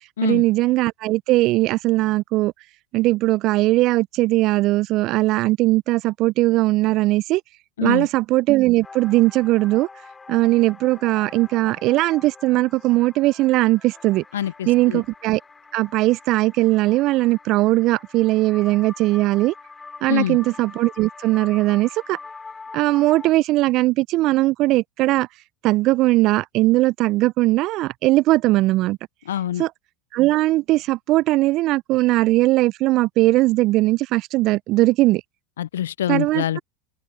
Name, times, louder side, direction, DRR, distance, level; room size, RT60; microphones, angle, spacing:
voice 1, 0.2-2.5 2.9-7.4 7.8-9.9 10.3-14.2 14.7-15.4 15.7-19.5 20.0-22.2 22.7-25.3 25.6-29.0 29.6-29.7 30.1-35.2 36.1-36.6, right 18 dB, 50° right, 0.7 m, -19 dB
sound 1, 8.8-23.3, left 4 dB, 15° left, 4.2 m, -43 dB
voice 2, 14.3-15.0 20.1-20.4 29.3-29.6 35.6-36.6, left 11 dB, 75° left, 0.5 m, -25 dB
hypercardioid pair, 85°, 0 cm